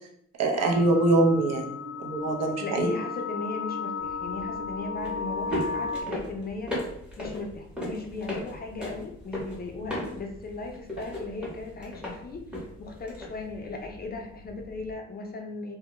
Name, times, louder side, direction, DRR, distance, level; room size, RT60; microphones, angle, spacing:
voice 1, 0.4-2.9, right 2 dB, 60° right, 1 dB, 0.6 m, -24 dB
sound 1, 0.6-6.0, left 5 dB, 80° right, 0.9 m, -34 dB
voice 2, 2.6-6.7 7.2-15.8, left 3 dB, 30° left, 2 dB, 0.4 m, -37 dB
sound 2, 4.0-14.9, equal, 5° right, 0.8 m, -38 dB
2.1 x 2.1 x 2.9 m, 0.72 s
cardioid pair, 90°, 30 cm